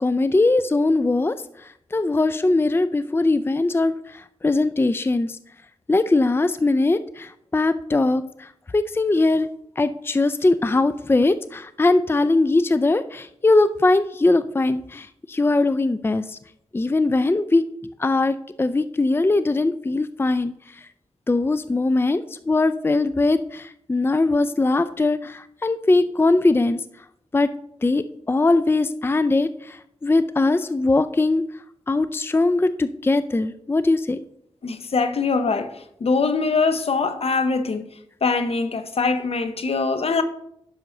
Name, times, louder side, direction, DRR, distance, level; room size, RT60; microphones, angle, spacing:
voice 1, 0.0-1.3 1.9-3.9 4.4-5.3 5.9-8.2 8.7-9.5 9.8-16.4 16.7-17.6 18.0-20.5 21.3-26.8 27.3-27.5 27.8-29.8 30.0-31.4 31.9-34.2, left 2 dB, 20° left, 0.4 m, -20 dB
voice 2, 34.6-35.7 36.0-37.8 38.2-40.2, left 4 dB, 65° left, 0.9 m, -22 dB
10.0 x 6.4 x 3.9 m
cardioid pair, 50°, 11 cm